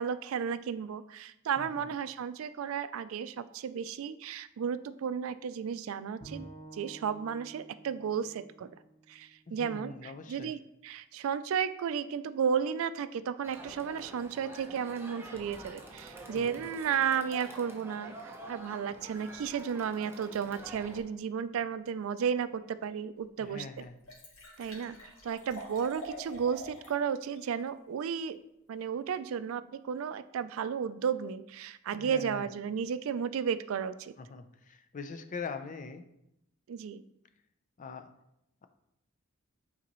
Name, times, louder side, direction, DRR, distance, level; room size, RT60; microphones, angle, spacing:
voice 1, 0.0-8.7 9.1-23.6 24.6-28.4 28.7-34.1 36.7-37.0, right 7 dB, 70° right, 13 dB, 0.3 m, -33 dB
voice 2, 1.6-1.9 9.5-10.5 16.4-16.7 23.4-24.0 31.9-32.5 34.2-36.1 37.8-38.1, left 4 dB, 40° left, 9 dB, 0.4 m, -43 dB
Bowed string instrument, 6.2-9.5, right 2 dB, 15° left, 1.6 m, -51 dB
Crowd, 13.4-21.0, right 1 dB, 10° right, 0.8 m, -47 dB
Liquid, 22.9-23.0 23.5-23.6 23.8-27.0 27.3-27.4, equal, 90° left, 1.7 m, -46 dB
8.5 x 4.0 x 3.0 m, 0.83 s
head